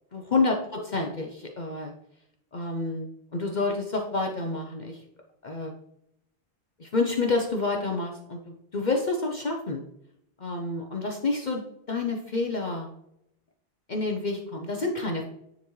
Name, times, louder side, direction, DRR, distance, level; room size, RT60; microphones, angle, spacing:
voice 1, 0.1-1.9 2.5-5.0 5.4-5.7 6.8-9.8 10.4-11.6 11.9-12.9 13.9-15.2, left 3 dB, 45° left, 2 dB, 0.8 m, -28 dB
9.6 x 4.1 x 3.1 m, 0.77 s
omnidirectional pair, 1.1 m